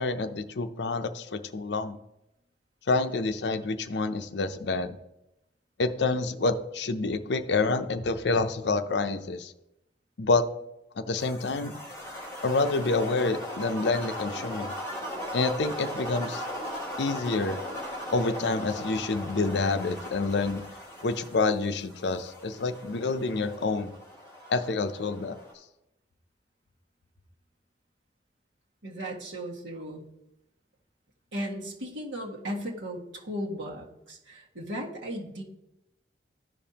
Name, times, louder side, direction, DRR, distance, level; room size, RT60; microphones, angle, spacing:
voice 1, 0.0-2.0 2.9-4.9 5.8-9.5 10.2-10.5 11.0-11.8 12.4-14.7 15.3-16.4 17.0-17.6 18.1-20.6 21.0-23.9 24.5-25.4, left 3 dB, 70° left, 9 dB, 0.6 m, -28 dB
sound 1, 11.2-25.5, left 1 dB, 15° left, 3.0 m, -38 dB
voice 2, 28.8-30.1 31.3-35.4, equal, 85° right, -2 dB, 1.7 m, -36 dB
14.0 x 5.3 x 2.9 m, 0.88 s
head